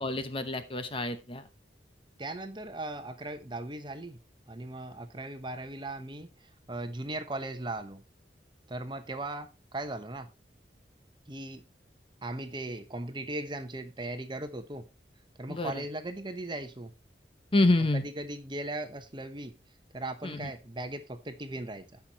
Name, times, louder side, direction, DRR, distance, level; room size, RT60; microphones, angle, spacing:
voice 1, 0.0-1.4 15.5-15.7 17.5-18.0 20.2-20.5, left 2 dB, 30° left, 10 dB, 0.9 m, -27 dB
voice 2, 2.2-4.2 4.5-6.3 6.7-8.0 8.7-10.3 11.3-11.6 12.2-14.9 15.4-16.9 17.9-19.5 19.9-22.0, right 2 dB, 25° right, 9 dB, 1.1 m, -38 dB
16.5 x 6.0 x 3.0 m, 0.26 s
head